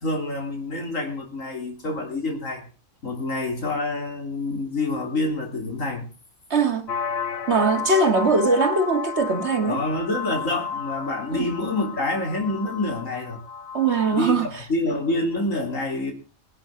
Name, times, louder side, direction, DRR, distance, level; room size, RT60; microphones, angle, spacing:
voice 1, 0.0-2.6 3.0-6.1 9.6-13.4 14.1-16.1, left 2 dB, 85° left, 3.9 m, -27 dB
voice 2, 6.5-6.9 7.5-9.8 11.3-11.5 13.7-14.5, right 4 dB, 55° right, 2.0 m, -21 dB
sound 1, 6.9-14.2, left 6 dB, 55° left, 1.1 m, -32 dB
19.5 x 12.0 x 3.8 m
omnidirectional pair, 1.3 m